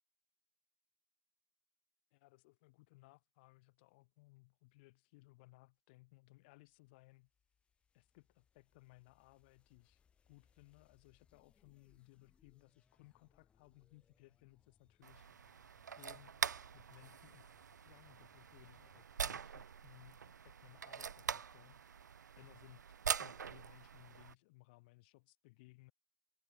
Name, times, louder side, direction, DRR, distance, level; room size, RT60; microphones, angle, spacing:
voice 1, 2.1-7.3 7.9-15.5 16.0-16.4 16.7-22.8 23.2-25.9, left 23 dB, 35° left, 4.2 m, -63 dB
sound 1, 6.7-19.2, left 7 dB, 10° left, 5.9 m, -75 dB
sound 2, 15.0-24.3, right 7 dB, 70° right, 0.8 m, -44 dB
hypercardioid pair, 145°, 10 cm